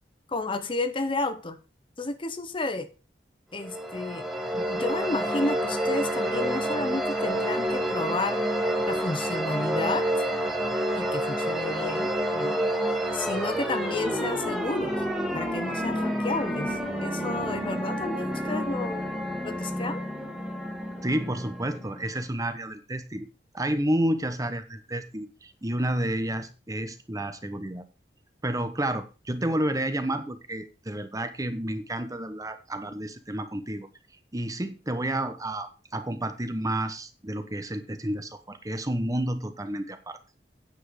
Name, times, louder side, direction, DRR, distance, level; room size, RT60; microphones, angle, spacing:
voice 1, 0.3-1.6 2.0-2.9 3.5-4.3 4.5-8.5 8.9-10.1 10.9-12.6 13.1-15.0 15.3-19.0 19.4-20.1, left 2 dB, 30° left, 0.7 m, -32 dB
sound 1, 3.6-22.2, equal, ahead, 1.9 m, -29 dB
voice 2, 21.0-23.3 23.5-27.8 28.4-33.9 34.3-40.2, right 1 dB, 20° right, 1.0 m, -30 dB
9.2 x 7.4 x 5.0 m
head